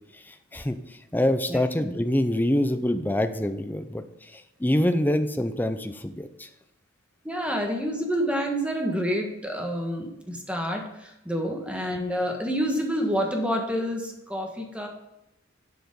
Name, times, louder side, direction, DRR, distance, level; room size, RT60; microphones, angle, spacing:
voice 1, 0.3-0.8 1.1-4.0 4.3-6.5, left 1 dB, 10° left, 8 dB, 0.6 m, -25 dB
voice 2, 7.2-14.9, equal, 5° right, 1 dB, 1.5 m, -28 dB
11.5 x 5.0 x 5.3 m, 0.90 s
head